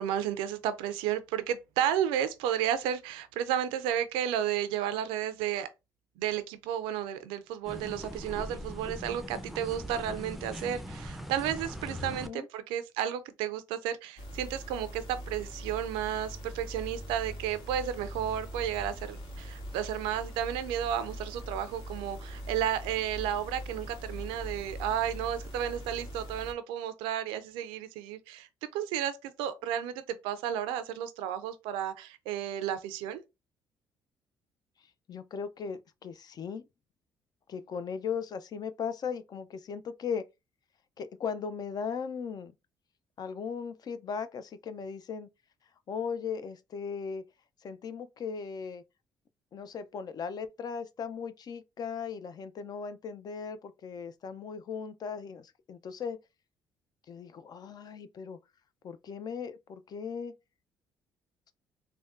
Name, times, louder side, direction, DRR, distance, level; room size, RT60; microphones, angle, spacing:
voice 1, 0.0-5.7 6.2-33.2, right 10 dB, 85° right, 0.3 m, -32 dB
sound 1, 7.7-12.3, equal, ahead, 0.5 m, -41 dB
sound 2, 14.2-26.5, equal, 65° left, 1.3 m, -42 dB
voice 2, 35.1-36.7 37.5-40.3 41.0-42.5 43.2-45.3 45.9-47.2 47.6-48.8 49.5-56.2 57.1-58.4 58.8-60.3, left 6 dB, 50° left, 0.5 m, -37 dB
3.4 x 2.2 x 2.4 m
supercardioid pair, 60°, 9 cm